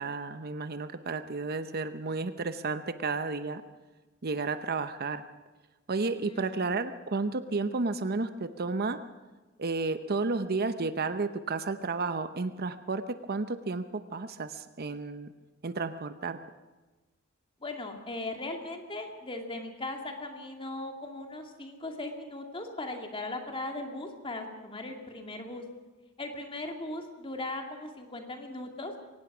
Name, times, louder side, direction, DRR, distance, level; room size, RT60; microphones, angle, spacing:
voice 1, 0.0-3.6 4.2-5.2 5.9-9.0 9.6-15.3 15.6-16.4, right 3 dB, 45° right, 11 dB, 0.8 m, -32 dB
voice 2, 6.2-6.7 17.6-25.6 26.2-28.9, left 2 dB, 25° left, 3 dB, 2.4 m, -38 dB
23.5 x 18.0 x 6.1 m, 1.2 s
head